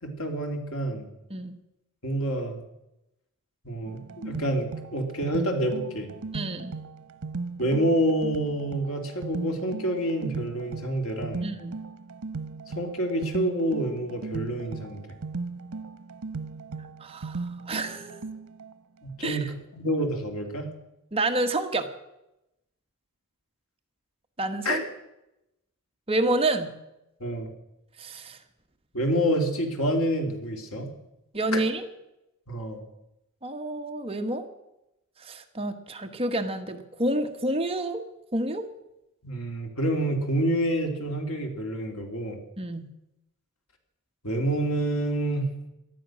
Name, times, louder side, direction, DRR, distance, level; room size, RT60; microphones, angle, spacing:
voice 1, 0.0-1.1 2.0-2.6 3.6-6.1 7.6-11.5 12.7-15.2 19.0-20.7 24.6-24.8 27.2-27.5 28.9-30.9 31.5-31.6 32.5-32.8 39.2-42.4 44.2-45.5, right 1 dB, 75° left, 3 dB, 3.2 m, -28 dB
sound 1, 3.9-18.7, right 4 dB, 85° right, 0.9 m, -37 dB
voice 2, 6.3-6.8 11.4-11.8 17.0-18.2 19.2-19.5 21.1-21.9 24.4-24.8 26.1-26.8 28.0-28.4 31.3-31.9 33.4-34.5 35.2-38.0 38.3-38.7 42.6-42.9, right 2 dB, 25° right, 5 dB, 1.3 m, -29 dB
18.0 x 12.5 x 6.3 m, 0.88 s
head